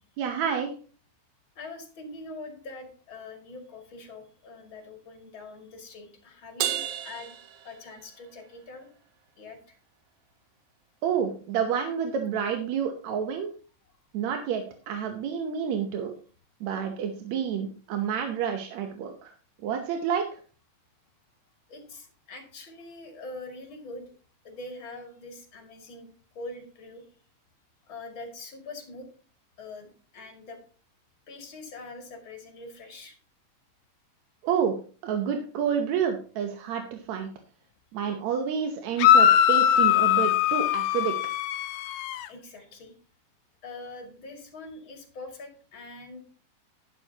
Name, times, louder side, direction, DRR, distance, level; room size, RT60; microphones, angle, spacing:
voice 1, 0.2-0.7 11.0-13.5 14.1-16.1 16.6-19.3 19.6-20.2 34.4-34.7 35.0-37.3 37.9-41.1, right 7 dB, 70° right, 4 dB, 2.0 m, -29 dB
voice 2, 1.6-7.4 7.6-8.9 9.4-9.8 21.7-24.0 24.4-26.1 26.3-27.1 27.9-29.1 29.6-30.6 31.3-33.2 42.3-42.9 43.6-46.2, left 2 dB, 40° left, 3 dB, 2.8 m, -43 dB
Crash cymbal, 6.6-8.3, right 11 dB, 85° right, 2.6 m, -32 dB
sound 1, 39.0-42.3, left 10 dB, 80° left, 1.7 m, -21 dB
11.5 x 11.0 x 2.9 m, 0.40 s
omnidirectional pair, 3.8 m